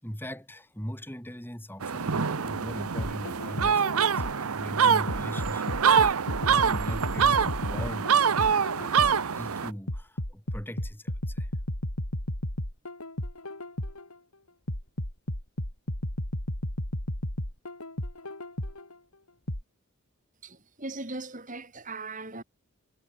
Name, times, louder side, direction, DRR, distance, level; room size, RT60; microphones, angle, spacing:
voice 1, 0.0-8.9 9.3-11.5, equal, 10° left, 5.7 m, -40 dB
sound 1, 1.8-9.7, right 6 dB, 75° right, 0.8 m, -25 dB
sound 2, 3.0-4.5 5.1-9.3 9.9-14.1 14.7-18.9 19.5-19.6, left 1 dB, 85° left, 4.9 m, -34 dB
voice 2, 20.4-22.4, right 2 dB, 35° right, 4.1 m, -39 dB
head